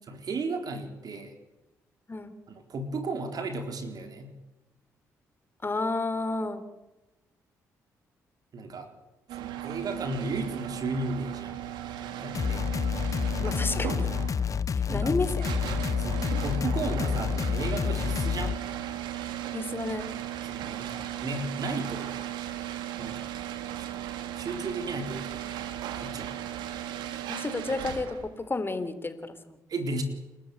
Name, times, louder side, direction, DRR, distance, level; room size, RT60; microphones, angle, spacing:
voice 1, 0.1-1.3 2.5-4.3 8.5-8.9 9.3-11.6 11.9-12.6 14.9-15.1 16.0-18.6 20.4-22.1 23.0-23.3 23.8-24.0 24.3-25.4 26.0-26.3 29.7-30.0, right 2 dB, 55° right, 6 dB, 4.1 m, -34 dB
voice 2, 5.6-6.6 13.4-14.1 14.9-15.5 19.5-20.1 27.3-29.6, left 3 dB, 30° left, 11 dB, 3.7 m, -31 dB
sound 1, 9.3-28.3, right 11 dB, 75° right, 2.1 m, -36 dB
sound 2, 12.3-18.5, left 6 dB, 45° left, 1.1 m, -29 dB
29.0 x 13.0 x 9.4 m, 1.0 s
hypercardioid pair, 45°, 8 cm